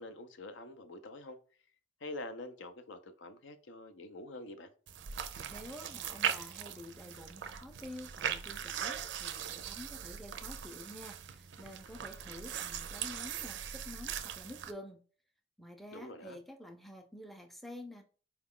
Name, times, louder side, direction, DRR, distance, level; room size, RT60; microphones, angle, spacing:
voice 1, 0.0-1.4 2.0-4.7 15.9-16.4, left 2 dB, 75° left, 0.5 m, -46 dB
sound 1, 4.9-14.7, right 9 dB, 65° right, 0.4 m, -40 dB
voice 2, 5.5-15.0 15.6-18.0, left 1 dB, ahead, 0.4 m, -49 dB
4.4 x 2.3 x 3.6 m
head